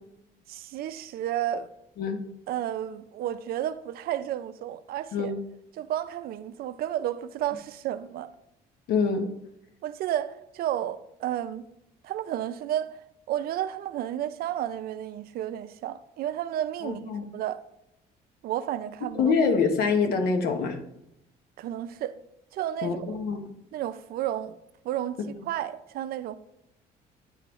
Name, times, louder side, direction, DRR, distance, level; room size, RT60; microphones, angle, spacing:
voice 1, 0.5-1.7 2.5-5.3 5.8-8.3 9.8-11.6 12.0-12.9 13.3-17.6 18.4-19.3 21.6-22.2 22.5-23.2 23.7-24.6 24.8-25.2 25.4-26.3, right 11 dB, 65° right, 0.4 m, -32 dB
voice 2, 8.9-9.3 16.8-17.2 19.2-20.8 22.8-23.5, left 5 dB, 65° left, 0.9 m, -25 dB
9.1 x 3.4 x 3.0 m
cardioid pair, 110°, 17 cm